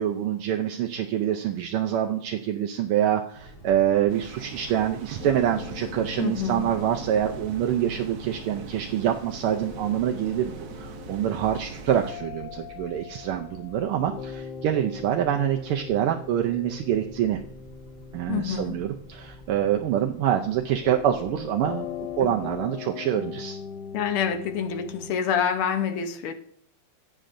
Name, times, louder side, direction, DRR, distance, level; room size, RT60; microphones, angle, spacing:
voice 1, 0.0-17.4 18.1-21.9 22.2-23.6, right 10 dB, 85° right, 3 dB, 1.6 m, -26 dB
sound 1, 3.3-22.7, right 2 dB, 20° left, 1.1 m, -48 dB
sound 2, 4.1-12.1, right 6 dB, 65° right, 1.3 m, -42 dB
sound 3, 5.2-25.1, left 7 dB, 70° left, 1.0 m, -41 dB
voice 2, 6.2-6.7 18.3-18.8 22.2-22.4 23.9-26.3, left 7 dB, 90° left, 7 dB, 1.8 m, -27 dB
16.5 x 7.6 x 2.6 m, 0.67 s
omnidirectional pair, 2.4 m